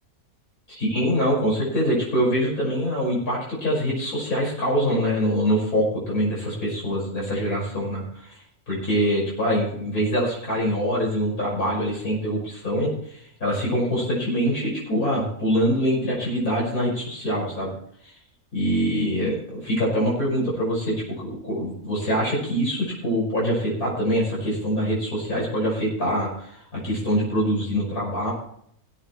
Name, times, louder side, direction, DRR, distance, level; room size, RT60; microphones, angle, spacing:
voice 1, 0.7-8.4 8.7-17.7 18.5-28.3, equal, 85° left, -4 dB, 6.1 m, -24 dB
19.5 x 8.9 x 3.2 m, 0.68 s
omnidirectional pair, 1.5 m